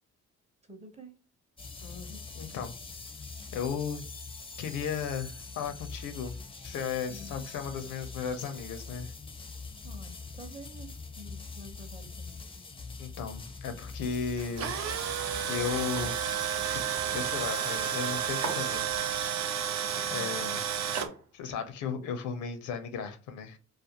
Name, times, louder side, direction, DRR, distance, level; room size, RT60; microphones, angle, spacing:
voice 1, 0.7-1.2 2.1-2.5 7.1-7.4 9.8-12.4 19.8-20.6, equal, 20° right, 0.7 m, -49 dB
sound 1, 1.6-19.3, left 4 dB, 20° left, 0.4 m, -44 dB
voice 2, 1.8-2.1 2.4-2.7 3.5-4.0 4.6-6.4 6.6-9.1 13.0-16.4 16.7-18.8 20.1-20.6 21.3-23.6, left 6 dB, 85° left, 0.6 m, -35 dB
Tools, 14.4-21.1, right 9 dB, 65° right, 0.5 m, -31 dB
sound 2, 16.0-16.3 18.4-18.9 21.0-21.6, right 4 dB, 80° right, 1.0 m, -39 dB
2.4 x 2.3 x 2.8 m
cardioid pair, 90°, 30 cm